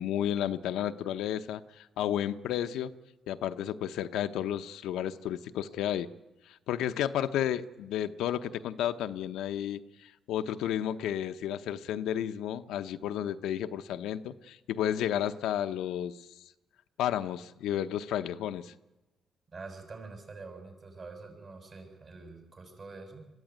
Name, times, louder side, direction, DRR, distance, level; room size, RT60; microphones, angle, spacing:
voice 1, 0.0-2.9 3.3-6.1 6.5-16.2 17.0-18.7, left 10 dB, 85° left, 9 dB, 0.8 m, -32 dB
voice 2, 19.5-23.2, right 3 dB, 45° right, 4 dB, 6.6 m, -46 dB
22.0 x 14.0 x 9.4 m, 0.99 s
cardioid pair, 90°, 0 cm